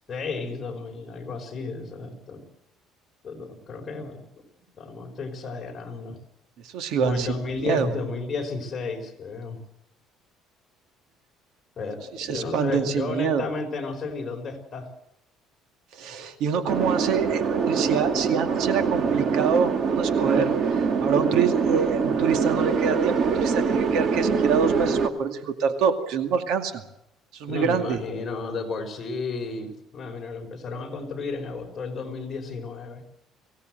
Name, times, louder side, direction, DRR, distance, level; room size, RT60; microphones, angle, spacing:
voice 1, 0.1-2.4 3.2-4.2 4.7-6.2 7.0-9.6 11.8-14.9 27.5-33.0, left 3 dB, 30° left, 2 dB, 4.9 m, -33 dB
voice 2, 6.7-7.3 7.6-7.9 12.2-13.4 16.0-20.5 21.0-26.8 27.4-28.0, right 6 dB, 70° right, 6 dB, 2.3 m, -26 dB
sound 1, 16.7-25.1, right 5 dB, 40° right, 2.0 m, -24 dB
23.5 x 17.5 x 7.8 m, 0.81 s
cardioid pair, 140°, 0 cm